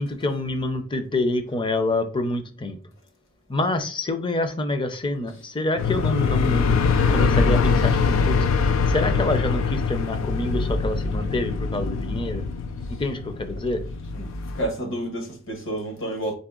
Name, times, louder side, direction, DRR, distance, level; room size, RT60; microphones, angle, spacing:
voice 1, 0.0-2.8 3.5-8.4 8.9-12.4 13.0-13.8, left 2 dB, 25° left, 0.6 m, -27 dB
sound 1, 5.8-14.6, left 5 dB, 85° left, 0.5 m, -23 dB
voice 2, 14.1-16.3, right 1 dB, 65° left, 1.5 m, -30 dB
4.1 x 3.2 x 3.7 m
head